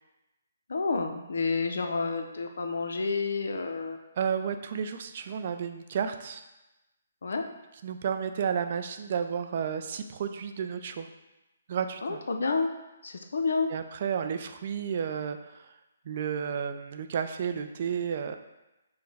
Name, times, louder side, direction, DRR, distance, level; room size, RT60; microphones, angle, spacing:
voice 1, 0.7-4.0 7.2-7.5 12.0-12.7 13.0-13.7, left 4 dB, 75° left, 5 dB, 0.5 m, -29 dB
voice 2, 4.2-6.4 7.8-11.1 11.7-12.2 13.7-15.7 16.1-18.4, right 7 dB, 45° right, 8 dB, 0.3 m, -32 dB
4.6 x 2.1 x 4.0 m, 0.99 s
hypercardioid pair, 155°, 0 cm